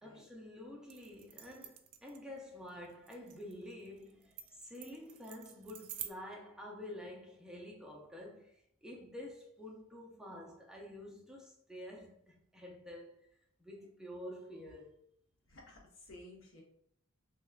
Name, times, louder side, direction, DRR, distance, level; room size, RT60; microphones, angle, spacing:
voice 1, 0.0-13.3 13.6-15.0, left 1 dB, 5° right, 0.5 m, -49 dB
sound 1, 0.9-6.1, right 11 dB, 85° right, 0.4 m, -49 dB
voice 2, 15.5-16.6, left 1 dB, 65° left, 0.9 m, -54 dB
3.4 x 3.0 x 2.3 m
head